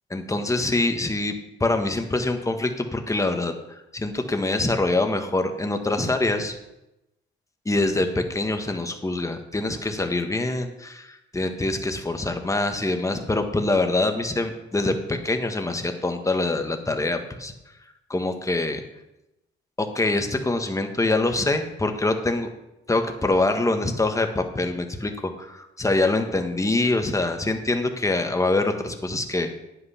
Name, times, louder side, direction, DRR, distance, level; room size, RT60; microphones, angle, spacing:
voice 1, 0.1-1.3 1.6-6.6 7.6-17.5 18.1-18.8 19.8-22.5 22.9-29.5, left 2 dB, 15° left, 6 dB, 1.5 m, -24 dB
9.5 x 8.4 x 5.8 m, 0.92 s
cardioid pair, 90°, 20 cm